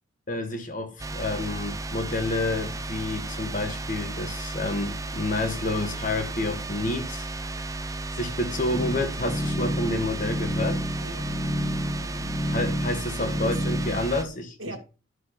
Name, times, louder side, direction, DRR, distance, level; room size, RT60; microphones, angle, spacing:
voice 1, 0.3-7.3 7.5-7.7 8.2-10.8 12.5-14.6, left 2 dB, 40° left, 1.8 m, -29 dB
sound 1, 1.0-14.2, right 2 dB, 15° right, 0.5 m, -34 dB
sound 2, 8.7-14.0, equal, 25° left, 2.1 m, -30 dB
voice 2, 11.0-11.5 12.0-12.3 13.2-13.5 14.6-14.8, right 2 dB, 80° right, 1.8 m, -40 dB
11.0 x 6.0 x 4.1 m
head